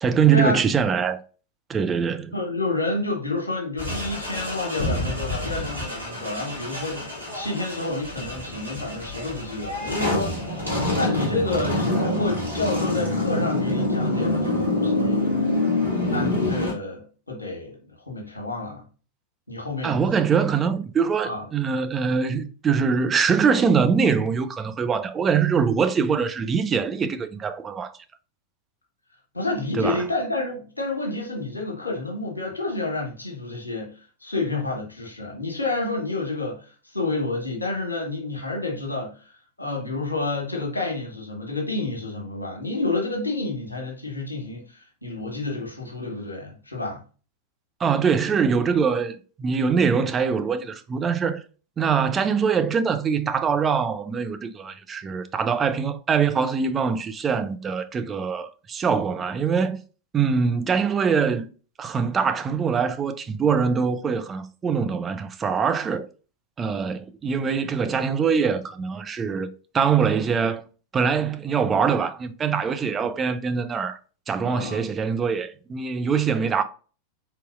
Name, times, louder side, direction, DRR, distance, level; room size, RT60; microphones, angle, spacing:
voice 1, 0.0-1.2 1.7-2.3 19.8-27.9 29.7-30.0 47.8-51.4 51.8-59.8 60.1-61.5 61.8-66.1 66.6-69.5 69.7-70.6 70.9-74.0 74.3-76.6, right 6 dB, 20° right, 0.5 m, -23 dB
voice 2, 2.3-10.6 11.0-15.4 16.1-18.9 19.5-20.1 21.2-21.5 29.3-33.9 34.2-39.3 39.6-47.0 74.4-74.8, left 2 dB, 80° left, 1.4 m, -29 dB
sound 1, 3.8-16.7, left 1 dB, 85° right, 1.6 m, -26 dB
4.2 x 3.9 x 2.5 m
figure-of-eight pair, 90°, 0 cm